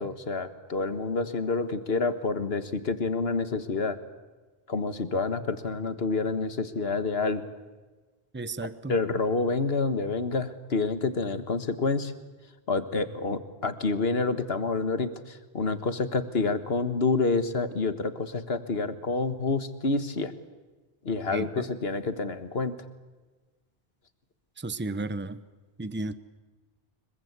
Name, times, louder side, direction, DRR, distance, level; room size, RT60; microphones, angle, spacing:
voice 1, 0.0-4.0 4.7-7.4 8.9-12.1 12.7-20.3 21.0-22.8, left 3 dB, 70° left, 11 dB, 1.7 m, -28 dB
voice 2, 8.3-8.9 21.3-21.7 24.6-25.4 25.8-26.1, right 2 dB, 10° right, 14 dB, 0.8 m, -33 dB
25.5 x 22.5 x 8.2 m, 1.3 s
omnidirectional pair, 1.1 m